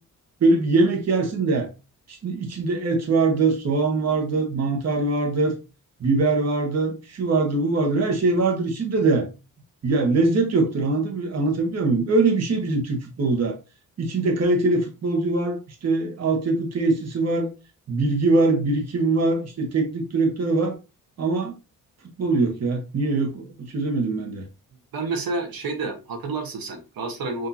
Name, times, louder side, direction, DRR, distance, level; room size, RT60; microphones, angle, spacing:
voice 1, 0.4-1.7 2.1-5.5 6.0-9.3 9.8-13.6 14.0-17.5 17.9-20.8 21.2-21.5 22.2-24.5, right 3 dB, 50° right, 1.1 m, -22 dB
voice 2, 24.9-27.5, right 3 dB, 85° right, 1.2 m, -29 dB
6.1 x 2.7 x 2.8 m
cardioid pair, 110°, 34 cm